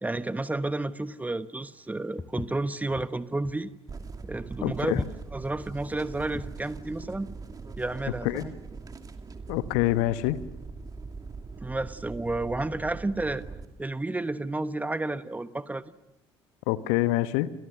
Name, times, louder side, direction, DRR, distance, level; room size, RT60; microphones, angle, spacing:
voice 1, 0.0-3.7 4.3-4.9 5.3-7.3 7.8-8.5 11.6-13.4 13.8-15.9, right 2 dB, 10° right, 14 dB, 1.2 m, -31 dB
Walk footsteps, 2.2-6.7, left 3 dB, 15° left, 1.1 m, -37 dB
sound 1, 3.9-13.7, right 4 dB, 30° right, 2.7 m, -42 dB
voice 2, 4.6-5.1 8.2-8.5 9.5-10.4 16.7-17.5, left 15 dB, 60° left, 14 dB, 1.2 m, -26 dB
30.0 x 27.5 x 6.5 m, 0.94 s
figure-of-eight pair, 55°, 14 cm